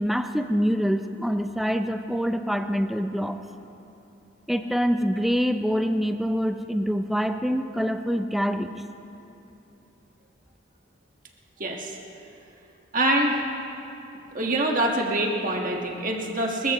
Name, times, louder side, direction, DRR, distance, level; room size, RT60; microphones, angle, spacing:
voice 1, 0.0-3.4 4.5-8.7, equal, ahead, 7 dB, 0.5 m, -25 dB
voice 2, 11.6-12.0 12.9-13.4 14.3-16.7, right 1 dB, 40° right, 0 dB, 1.6 m, -25 dB
29.5 x 15.0 x 3.1 m, 2.9 s
head